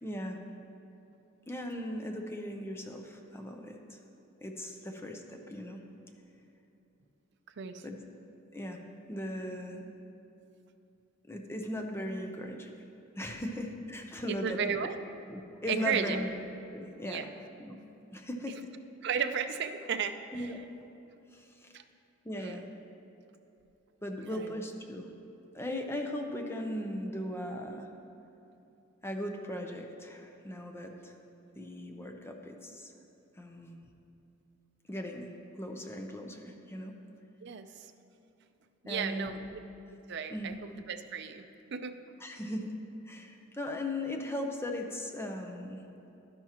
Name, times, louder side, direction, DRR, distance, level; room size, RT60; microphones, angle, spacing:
voice 1, 0.0-0.4 1.5-4.0 4.4-5.8 7.8-8.0 8.5-8.8 9.1-9.9 11.3-12.7 13.2-14.8 15.3-16.3 16.7-17.2 17.6-17.8 18.1-18.6 20.3-20.6 21.3-21.8 22.2-22.7 24.0-25.0 25.5-27.9 29.0-31.1 31.5-32.9 33.4-33.8 34.9-36.9 38.9-39.5 40.3-40.6 42.2-42.7 43.1-45.9, left 1 dB, 10° left, 3 dB, 0.6 m, -38 dB
voice 2, 14.3-15.0 15.7-16.3 17.0-17.3 19.0-20.6 21.7-21.8 22.3-22.6 24.3-24.6 37.4-37.9 38.8-39.4 40.1-41.5 41.7-42.0, right 7 dB, 55° right, 8 dB, 0.5 m, -34 dB
12.0 x 10.5 x 2.9 m, 2.8 s
head